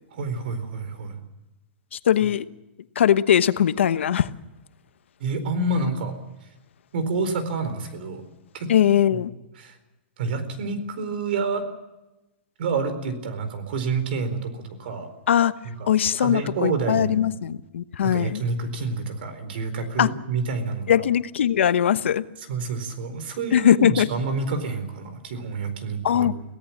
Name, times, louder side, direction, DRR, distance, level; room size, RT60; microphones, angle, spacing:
voice 1, 0.1-1.2 5.2-6.1 6.9-8.2 8.5-8.7 9.1-9.2 9.6-9.8 10.2-11.7 12.6-15.1 15.6-17.3 18.1-21.0 22.5-26.4, right 3 dB, 55° right, 10 dB, 4.3 m, -28 dB
voice 2, 1.9-2.5 3.0-4.3 8.7-9.3 15.3-15.5 15.9-18.4 20.0-20.1 20.9-22.3 23.5-24.1 26.0-26.3, left 10 dB, 85° left, 13 dB, 1.1 m, -20 dB
25.0 x 17.0 x 7.3 m, 1.0 s
supercardioid pair, 170°, 6 cm